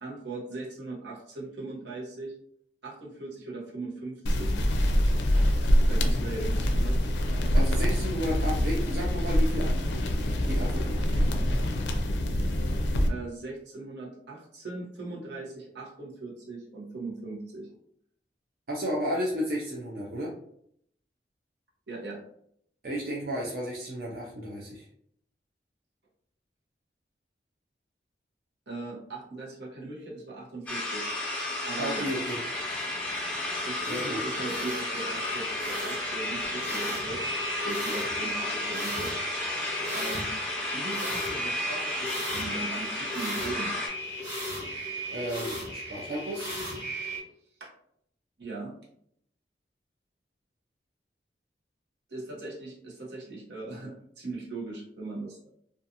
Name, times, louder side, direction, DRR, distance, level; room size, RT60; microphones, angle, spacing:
voice 1, 0.0-2.3 2.8-4.6 5.8-7.0 13.1-17.7 21.9-22.2 28.7-31.1 31.6-32.1 33.7-37.2 37.6-39.1 39.9-40.3 40.7-43.7 47.6-47.7 48.4-48.7 52.1-55.5, right 2 dB, 80° right, -4 dB, 0.9 m, -39 dB
sound 1, 4.3-13.1, equal, 85° left, 0.4 m, -25 dB
voice 2, 7.5-11.3 18.7-20.3 22.8-24.9 31.8-32.4 33.9-34.2 45.1-46.5, equal, 55° right, -4 dB, 0.5 m, -33 dB
sound 2, 30.7-43.9, left 2 dB, 5° left, 0.6 m, -33 dB
sound 3, 32.4-47.2, equal, 25° right, 0.9 m, -37 dB
2.5 x 2.4 x 2.6 m, 0.70 s
head